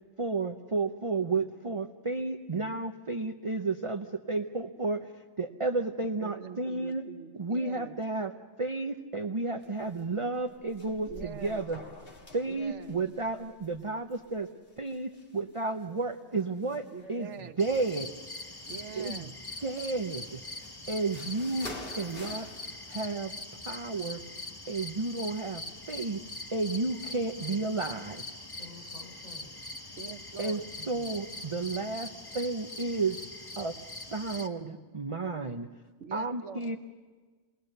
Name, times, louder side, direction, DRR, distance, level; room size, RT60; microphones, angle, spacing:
voice 1, 0.2-5.1 5.4-7.0 7.4-8.3 8.6-11.8 12.3-14.5 14.8-17.3 17.6-18.1 19.0-19.3 19.6-20.4 20.9-21.7 22.0-22.5 22.9-23.3 23.6-24.2 24.7-26.2 26.5-28.2 30.4-30.6 30.9-33.2 33.6-33.7 34.1-35.7 36.1-36.8, right 3 dB, 30° right, 5 dB, 0.8 m, -32 dB
voice 2, 6.0-8.0 11.1-11.6 12.5-13.0 16.9-17.6 18.7-19.4 30.0-30.7 36.0-36.8, right 6 dB, 75° right, 8 dB, 1.2 m, -44 dB
sound 1, 9.6-10.1 10.3-15.8 16.4-17.3 17.7-19.1 19.5-23.6, left 1 dB, 50° left, 2.0 m, -49 dB
voice 3, 16.3-17.5 28.5-29.6 30.8-31.1, left 1 dB, 35° left, -3 dB, 7.2 m, -52 dB
sound 2, 17.6-34.5, left 2 dB, 20° left, 1.2 m, -42 dB
29.0 x 20.5 x 6.7 m, 1.4 s
omnidirectional pair, 1.2 m